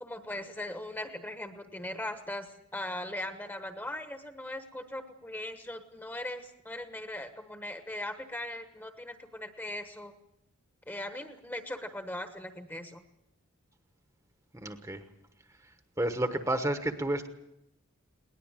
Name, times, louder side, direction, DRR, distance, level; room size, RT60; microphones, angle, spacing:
voice 1, 0.0-10.1 10.9-13.0, left 1 dB, 10° left, 8 dB, 1.2 m, -39 dB
voice 2, 14.5-15.0 16.0-17.3, right 1 dB, 15° right, 8 dB, 1.1 m, -30 dB
20.5 x 19.0 x 8.9 m, 0.86 s
head